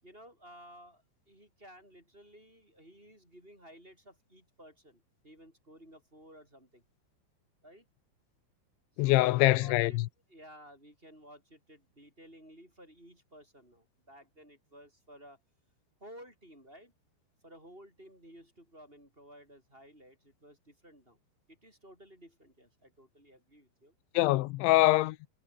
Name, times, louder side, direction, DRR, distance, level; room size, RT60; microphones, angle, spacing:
voice 1, 0.0-6.8 7.6-7.9 9.0-10.0 10.3-15.4 16.0-16.9 17.4-21.2 21.5-24.0, equal, 10° right, 6.8 m, -55 dB
voice 2, 9.0-10.1 24.1-25.2, left 18 dB, 85° left, 3.0 m, -24 dB
omnidirectional pair, 5.6 m